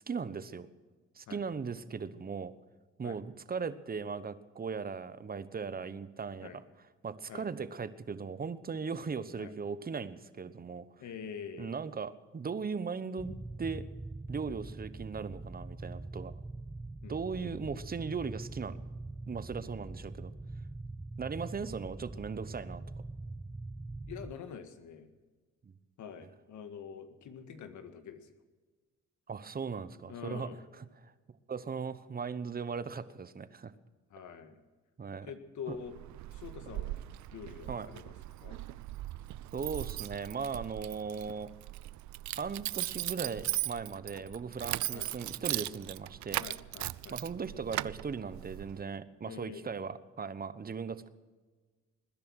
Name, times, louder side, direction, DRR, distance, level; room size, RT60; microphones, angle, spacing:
voice 1, 0.1-0.7 1.2-2.5 3.0-6.6 7.0-10.9 11.6-13.8 14.3-16.3 17.1-18.8 19.3-20.3 21.2-22.8 25.7-25.8 29.3-30.5 30.8-31.1 31.5-33.7 35.0-35.3 35.7-35.8 37.7-37.9 39.5-41.5 42.4-46.4 47.1-51.1, right 5 dB, 30° right, 14 dB, 1.0 m, -38 dB
voice 2, 11.0-11.8 17.0-17.2 24.1-25.1 26.0-28.3 30.1-30.6 34.1-34.6 35.2-36.0 36.3-37.0 37.3-38.1 38.4-38.6 44.9-45.1 46.4-47.3 49.2-49.7, left 7 dB, 75° left, 8 dB, 1.8 m, -45 dB
sound 1, 13.2-24.3, right 2 dB, 10° right, 0.6 m, -43 dB
Keys jangling, 35.7-48.8, right 16 dB, 70° right, 0.5 m, -39 dB
20.0 x 10.5 x 6.3 m, 1.3 s
cardioid pair, 90°, 30 cm